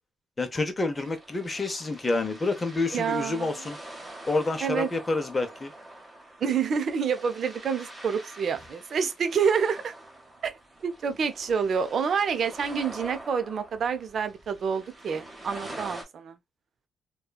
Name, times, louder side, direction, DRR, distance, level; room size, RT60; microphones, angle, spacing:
voice 1, 0.4-3.8 4.2-5.7, left 3 dB, 25° left, 0.7 m, -28 dB
sound 1, 0.9-16.0, right 1 dB, 20° right, 1.0 m, -45 dB
voice 2, 2.9-3.7 4.6-4.9 6.4-9.9 10.4-10.5 10.8-16.4, right 6 dB, 55° right, 0.5 m, -28 dB
2.8 x 2.3 x 2.3 m
cardioid pair, 90°, 0 cm